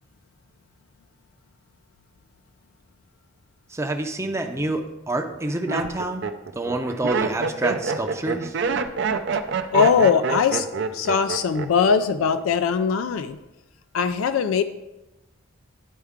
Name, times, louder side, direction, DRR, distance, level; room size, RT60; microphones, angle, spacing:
voice 1, 3.7-6.3 6.6-8.6, right 2 dB, 15° right, 4 dB, 0.6 m, -27 dB
Laughter, 4.3-4.7 5.3-11.9 12.2-12.7, right 5 dB, 60° right, 0.5 m, -27 dB
voice 2, 9.7-10.7 10.9-13.4 13.9-14.6, left 6 dB, 85° left, 10 dB, 0.4 m, -20 dB
11.0 x 4.5 x 3.6 m, 0.99 s
head